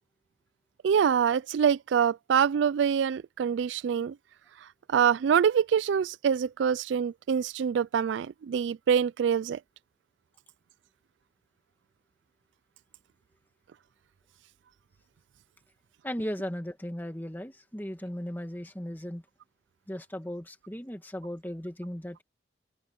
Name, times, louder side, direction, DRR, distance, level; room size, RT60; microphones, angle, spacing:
voice 1, 0.8-4.2 4.9-9.6, right 7 dB, 75° right, 0.3 m, -25 dB
voice 2, 16.0-19.2 19.9-22.2, equal, 10° left, 1.6 m, -36 dB
open air
head